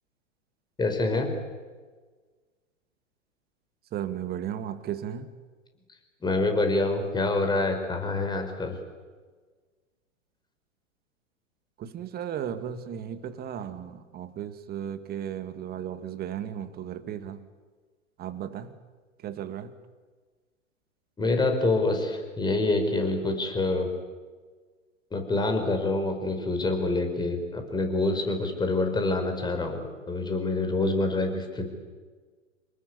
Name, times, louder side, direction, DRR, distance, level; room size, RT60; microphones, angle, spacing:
voice 1, 0.8-1.3 6.2-8.7 21.2-23.9 25.1-29.8 30.1-31.7, left 2 dB, 10° left, 6 dB, 5.0 m, -26 dB
voice 2, 3.9-5.4 11.8-17.4 18.2-18.7 19.2-19.7, right 9 dB, 25° right, 11 dB, 2.1 m, -35 dB
28.5 x 19.0 x 9.7 m, 1.4 s
figure-of-eight pair, 110°, 39 cm